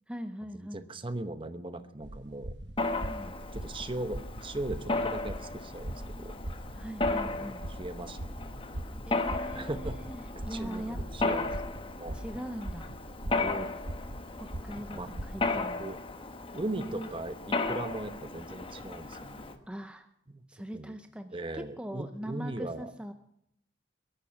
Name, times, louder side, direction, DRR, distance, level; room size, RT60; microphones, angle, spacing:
voice 1, 0.1-0.9 3.0-3.4 6.8-7.6 9.0-11.4 12.1-12.9 14.4-15.9 16.7-17.1 19.7-20.1 20.5-23.1, equal, 5° right, 7 dB, 0.7 m, -41 dB
voice 2, 0.7-2.5 3.5-6.3 7.3-8.6 9.5-10.0 10.5-11.5 11.9-12.2 13.3-13.7 14.9-15.1 15.5-16.0 16.5-19.6 20.3-20.4 20.7-20.9 21.3-22.9, right 2 dB, 30° right, 10 dB, 1.0 m, -38 dB
sound 1, 2.0-15.7, right 1 dB, 65° right, 1.2 m, -41 dB
Mechanisms, 2.8-19.5, left 3 dB, 30° left, 1.2 m, -35 dB
22.0 x 11.5 x 5.8 m, 0.73 s
head